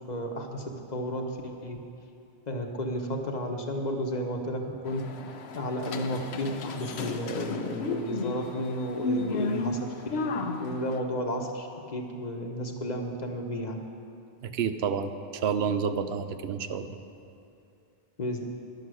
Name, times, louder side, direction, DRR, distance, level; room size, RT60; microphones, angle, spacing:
voice 1, 0.1-1.8 2.5-5.0 5.5-13.8 18.2-18.4, equal, 45° left, 3 dB, 1.0 m, -33 dB
sound 1, 4.8-11.0, left 2 dB, 85° left, 1.0 m, -33 dB
voice 2, 14.4-16.9, right 6 dB, 80° right, 10 dB, 0.9 m, -29 dB
11.0 x 8.0 x 6.2 m, 2.6 s
omnidirectional pair, 1.1 m